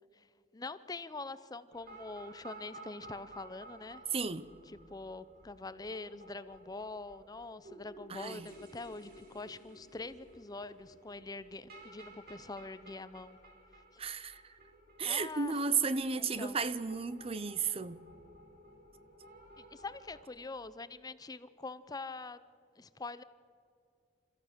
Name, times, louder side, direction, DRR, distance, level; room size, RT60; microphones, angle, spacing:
voice 1, 0.5-4.0 4.7-13.4 15.0-15.6 16.2-16.6 19.6-22.4 22.8-23.2, left 3 dB, 20° left, 0.6 m, -44 dB
sound 1, 1.7-20.2, right 1 dB, 60° right, 3.9 m, -55 dB
voice 2, 4.1-4.5 8.1-8.5 14.0-14.4 15.0-18.0, right 5 dB, 35° right, 0.7 m, -33 dB
28.0 x 14.5 x 6.7 m
head